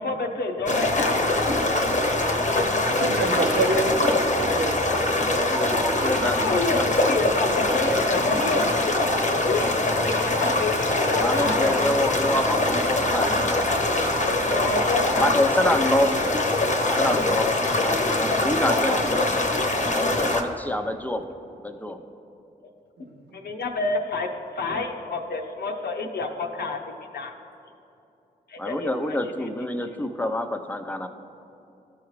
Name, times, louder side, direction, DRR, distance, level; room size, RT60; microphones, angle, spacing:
voice 1, 0.0-1.9 3.3-3.6 6.2-9.7 10.0-11.8 14.6-15.4 15.8-16.0 17.2-17.5 23.3-26.8 27.1-27.3 28.5-29.2, left 3 dB, 70° left, 3 dB, 0.8 m, -29 dB
sound 1, 0.7-20.4, left 2 dB, 45° left, 0.9 m, -23 dB
voice 2, 2.8-4.8 11.4-11.8 23.0-23.4, right 3 dB, 80° right, 2 dB, 0.8 m, -27 dB
voice 3, 5.2-6.9 9.5-10.3 11.2-14.7 15.2-16.3 16.9-19.5 19.9-22.0 28.6-31.1, left 1 dB, 10° left, 7 dB, 0.7 m, -27 dB
13.0 x 4.8 x 3.2 m, 2.8 s
supercardioid pair, 40°, 17 cm